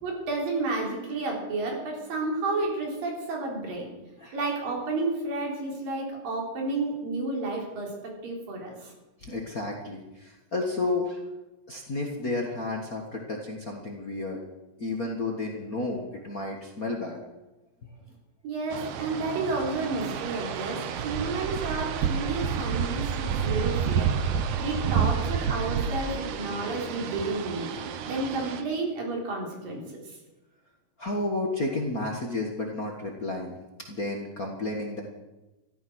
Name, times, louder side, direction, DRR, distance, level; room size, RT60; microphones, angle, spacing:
voice 1, 0.0-3.9 4.3-7.9 8.2-8.9 18.4-24.1 24.6-27.7 28.0-29.8 30.1-30.2, right 3 dB, 85° right, -1 dB, 5.6 m, -31 dB
voice 2, 9.2-11.2 11.7-14.4 14.8-17.2 17.8-17.9 31.0-33.6 33.9-35.0, left 2 dB, 35° left, 0 dB, 1.5 m, -31 dB
sound 1, 18.7-28.6, right 7 dB, 70° right, 2.4 m, -29 dB
15.5 x 13.0 x 6.3 m, 1.1 s
omnidirectional pair, 3.9 m